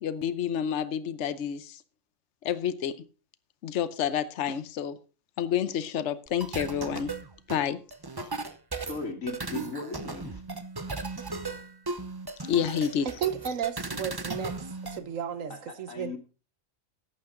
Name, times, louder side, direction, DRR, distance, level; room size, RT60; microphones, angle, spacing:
voice 1, 0.0-1.8 2.4-3.0 3.6-5.0 5.4-7.1 7.5-7.8 12.5-13.1, left 9 dB, 65° left, 1.1 m, -29 dB
sound 1, 6.3-15.0, right 3 dB, 20° right, 0.8 m, -36 dB
voice 2, 8.9-10.4 15.5-16.2, left 4 dB, 80° left, 2.3 m, -37 dB
voice 3, 13.0-14.6 14.9-15.5 15.8-16.2, right 8 dB, 80° right, 1.3 m, -33 dB
14.5 x 9.6 x 3.8 m
omnidirectional pair, 1.4 m